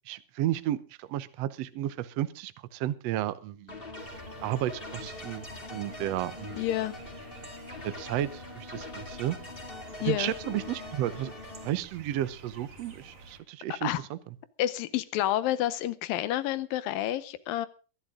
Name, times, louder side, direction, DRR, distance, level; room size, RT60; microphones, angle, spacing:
voice 1, 0.1-3.8 4.4-5.5 5.7-6.6 7.8-9.4 10.0-11.3 11.6-14.2, right 13 dB, 80° right, 14 dB, 1.4 m, -32 dB
sound 1, 3.7-11.7, left 2 dB, 20° left, 1.9 m, -43 dB
sound 2, 4.0-13.4, right 2 dB, 45° right, 3.2 m, -50 dB
voice 2, 6.6-6.9 10.0-10.3 13.8-14.0 14.6-17.7, left 13 dB, 80° left, 15 dB, 2.5 m, -29 dB
22.5 x 11.5 x 3.7 m, 0.35 s
omnidirectional pair, 4.1 m